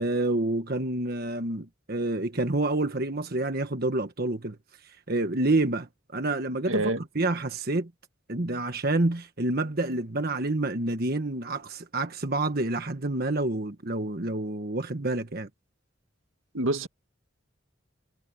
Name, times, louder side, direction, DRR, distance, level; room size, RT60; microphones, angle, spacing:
voice 1, 0.0-4.6 5.1-6.8 7.1-7.9 8.3-15.5, right 2 dB, 50° right, 1.4 m, -28 dB
voice 2, 6.7-7.0 16.5-16.9, right 2 dB, 85° right, 2.1 m, -26 dB
head